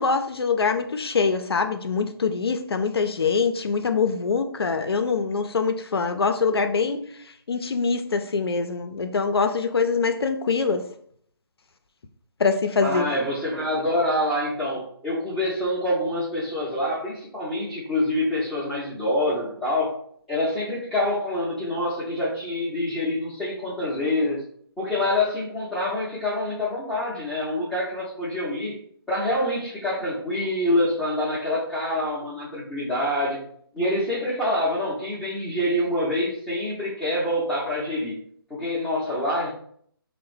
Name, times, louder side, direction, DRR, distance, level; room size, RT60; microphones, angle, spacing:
voice 1, 0.0-7.1 7.5-10.8 12.4-13.1, left 5 dB, 75° left, 7 dB, 0.4 m, -24 dB
voice 2, 12.8-20.0 20.3-24.4 24.8-28.7 29.1-33.4 33.7-38.2 38.5-39.5, left 1 dB, ahead, -12 dB, 0.5 m, -26 dB
3.4 x 2.0 x 3.2 m, 0.62 s
figure-of-eight pair, 145°, 13 cm